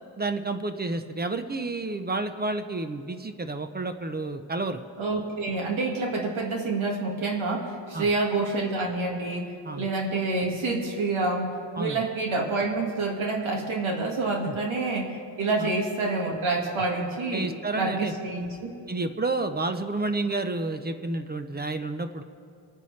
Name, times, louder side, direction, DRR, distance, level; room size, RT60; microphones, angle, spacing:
voice 1, 0.2-4.8 7.9-8.1 9.6-9.9 11.8-12.0 14.4-14.5 15.6-15.7 17.3-18.1 18.9-22.2, right 2 dB, 20° right, 8 dB, 0.5 m, -30 dB
voice 2, 5.0-18.7, right 3 dB, 80° right, 0 dB, 1.8 m, -28 dB
26.0 x 9.7 x 3.2 m, 2.4 s
wide cardioid pair, 135°, 48 cm